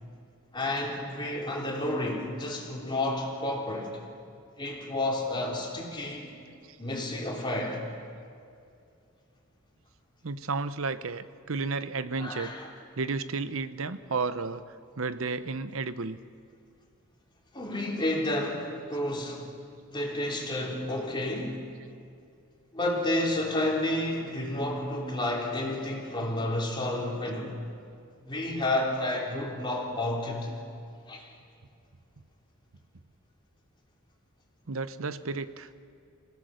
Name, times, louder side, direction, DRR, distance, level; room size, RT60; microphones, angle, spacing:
voice 1, 0.5-3.9 4.6-6.3 6.8-7.8 12.2-12.7 17.5-19.4 19.9-21.6 22.7-27.6 28.2-30.5 31.1-31.2, left 1 dB, 20° left, -2 dB, 3.4 m, -30 dB
voice 2, 10.2-12.5 13.0-14.6 15.0-16.2 34.7-35.7, right 4 dB, 70° right, 12 dB, 0.8 m, -32 dB
27.5 x 17.0 x 6.4 m, 2.4 s
head